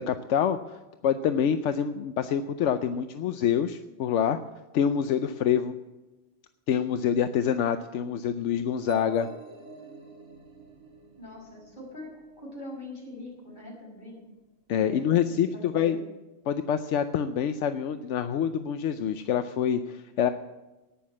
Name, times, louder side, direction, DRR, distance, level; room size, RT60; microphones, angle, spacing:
voice 1, 0.1-0.8 1.0-4.4 4.7-5.7 6.7-9.3 14.7-16.0 16.5-20.3, left 8 dB, 80° left, 10 dB, 0.9 m, -26 dB
sound 1, 8.9-12.6, right 1 dB, 85° right, 2.3 m, -45 dB
voice 2, 11.2-12.1 12.4-14.2 14.8-15.2 15.5-16.0, left 1 dB, 40° left, -3 dB, 6.4 m, -42 dB
11.5 x 9.4 x 8.5 m, 1.1 s
omnidirectional pair, 1.2 m